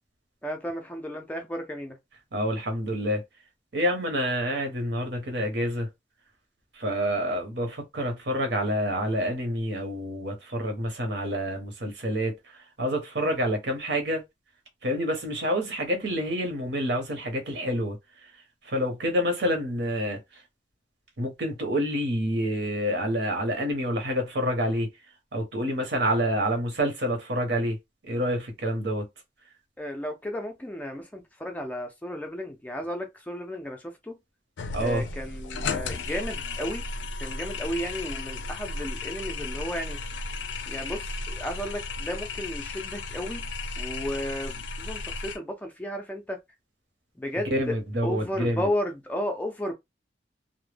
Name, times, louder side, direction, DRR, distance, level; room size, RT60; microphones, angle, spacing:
voice 1, 0.4-2.0 29.8-34.2 34.8-36.8 37.2-40.0 40.7-43.5 43.8-46.4 47.2-47.8 48.0-49.7, equal, 10° left, 0.3 m, -33 dB
voice 2, 2.3-3.2 3.7-5.9 6.8-12.3 12.8-14.2 14.8-18.0 18.7-20.2 21.2-24.9 25.3-27.8 28.1-29.1 34.7-35.0 47.5-48.7, equal, 70° right, 0.8 m, -27 dB
sound 1, 34.6-45.4, left 3 dB, 80° left, 0.4 m, -34 dB
2.1 x 2.0 x 3.2 m
head